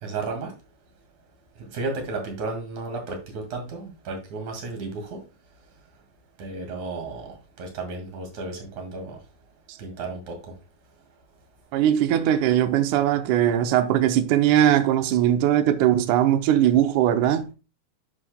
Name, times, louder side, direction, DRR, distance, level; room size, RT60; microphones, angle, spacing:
voice 1, 0.0-0.5 1.6-5.2 6.4-9.2 9.8-10.5, right 3 dB, 55° right, 3.3 m, -33 dB
voice 2, 11.7-17.5, right 11 dB, 90° right, 1.7 m, -20 dB
11.0 x 6.2 x 2.2 m
omnidirectional pair, 4.4 m